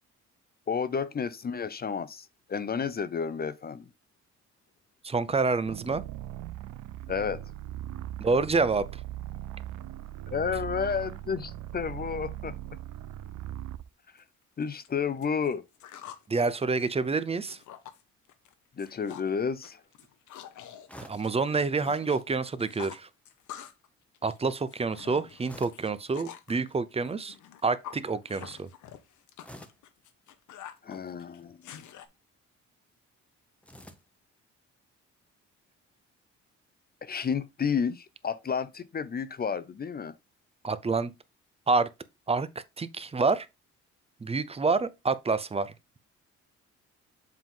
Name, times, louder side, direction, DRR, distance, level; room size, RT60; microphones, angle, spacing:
voice 1, 0.7-3.8 7.1-7.4 10.3-12.5 14.6-15.6 18.8-19.8 30.8-31.8 37.0-40.1, left 6 dB, 30° left, 0.6 m, -31 dB
voice 2, 5.0-6.0 8.2-8.8 16.3-17.6 21.0-23.1 24.2-27.3 27.6-28.7 40.6-41.1 41.7-41.9 42.3-42.5 42.8-43.5 44.2-45.7, right 4 dB, 20° right, 0.6 m, -27 dB
sound 1, 5.6-13.9, right 12 dB, 90° right, 0.5 m, -39 dB
sound 2, 14.2-14.3 14.6-16.3 16.6-18.0 18.3-18.5 18.8-19.3 19.6-22.2 22.5-23.9 24.1-26.5 27.0-32.1, left 10 dB, 75° left, 0.9 m, -47 dB
sound 3, 20.9-21.3 23.0-23.4 25.4-26.0 26.5-26.8 29.4-29.9 31.2-31.6 33.6-34.2, equal, 5° left, 0.9 m, -49 dB
7.3 x 3.7 x 3.8 m
cardioid pair, 90°, 30 cm